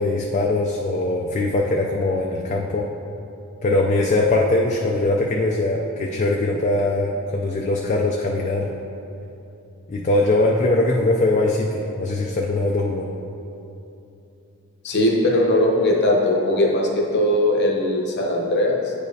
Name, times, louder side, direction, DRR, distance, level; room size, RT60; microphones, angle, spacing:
voice 1, 0.0-2.9 3.6-8.7 9.9-11.7 12.0-13.1, left 2 dB, 35° left, -1 dB, 0.4 m, -21 dB
voice 2, 14.8-18.9, left 1 dB, 50° left, -1 dB, 0.9 m, -19 dB
9.0 x 5.1 x 2.7 m, 2.8 s
head